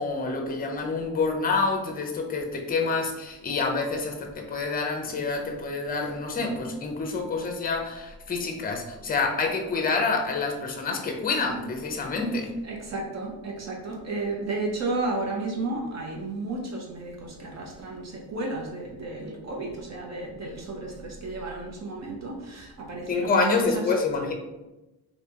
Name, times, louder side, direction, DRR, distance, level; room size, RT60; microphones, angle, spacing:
voice 1, 0.0-12.5 23.1-24.3, left 4 dB, 25° left, 3 dB, 0.6 m, -27 dB
voice 2, 12.6-23.8, right 2 dB, 45° right, 0 dB, 0.7 m, -33 dB
3.3 x 2.7 x 2.9 m, 1.0 s
cardioid pair, 105°, 39 cm